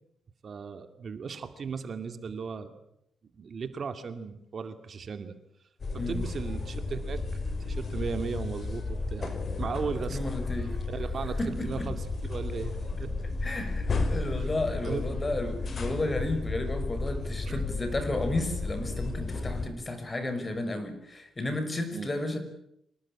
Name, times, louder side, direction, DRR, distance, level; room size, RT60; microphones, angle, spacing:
voice 1, 0.4-2.8 3.4-5.4 6.1-7.2 7.6-9.3 9.6-10.3 10.9-12.0 12.3-13.1 14.4-14.5 14.8-15.1 16.6-16.9 17.2-17.6 21.9-22.1, right 5 dB, 55° right, 9 dB, 2.4 m, -36 dB
sound 1, 5.8-19.7, left 3 dB, 45° left, 5.0 m, -33 dB
voice 2, 10.1-10.8 11.4-11.9 13.4-22.4, left 2 dB, 25° left, 9 dB, 5.6 m, -32 dB
26.0 x 19.0 x 8.8 m, 0.77 s
cardioid pair, 90°, 0 cm